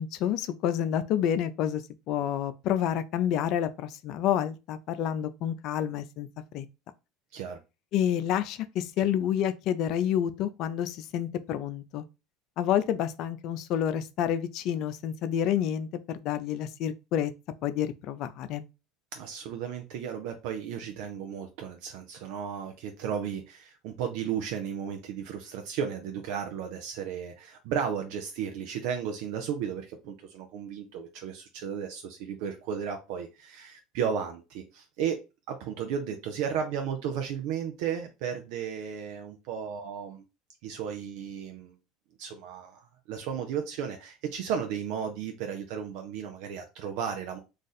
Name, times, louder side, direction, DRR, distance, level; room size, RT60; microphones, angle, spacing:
voice 1, 0.0-1.8 2.1-6.3 6.5-6.7 7.9-12.0 12.6-15.9 16.1-17.3 17.6-18.7, left 10 dB, 60° left, 0.4 m, -29 dB
voice 2, 19.1-35.2 35.5-40.2 40.6-41.8 42.2-47.4, right 8 dB, 70° right, 0.5 m, -34 dB
2.5 x 2.5 x 3.9 m
hypercardioid pair, 85°, 0 cm